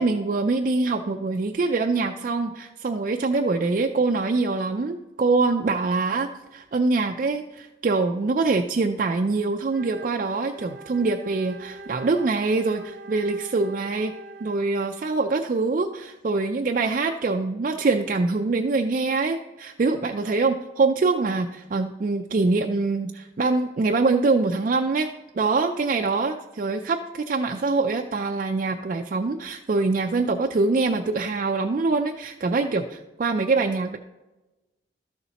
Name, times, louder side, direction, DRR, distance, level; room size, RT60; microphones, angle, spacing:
voice 1, 0.0-14.1 14.4-25.1 25.3-34.0, right 3 dB, 45° right, 4 dB, 0.3 m, -24 dB
Wind instrument woodwind instrument, 9.6-14.9, right 1 dB, 70° right, 0.7 m, -43 dB
12.5 x 6.9 x 2.9 m, 1.1 s
head